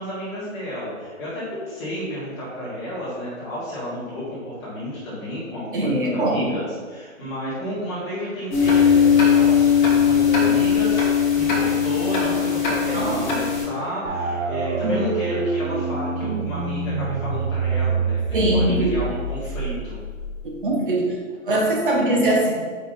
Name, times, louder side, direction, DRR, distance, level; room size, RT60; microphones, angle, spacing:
voice 1, 0.0-6.6 6.9-11.0 11.4-20.0, equal, 20° left, -9 dB, 1.8 m, -32 dB
voice 2, 5.7-6.5 12.9-13.3 14.8-15.0 18.3-18.9 20.6-21.0 21.5-22.5, right 1 dB, 40° right, -1 dB, 1.2 m, -21 dB
sound 1, 8.5-13.6, left 7 dB, 35° left, 1.3 m, -18 dB
sound 2, 14.0-20.7, right 4 dB, 80° right, 1.2 m, -26 dB
5.0 x 4.9 x 4.0 m, 1.5 s
hypercardioid pair, 175°, 40 cm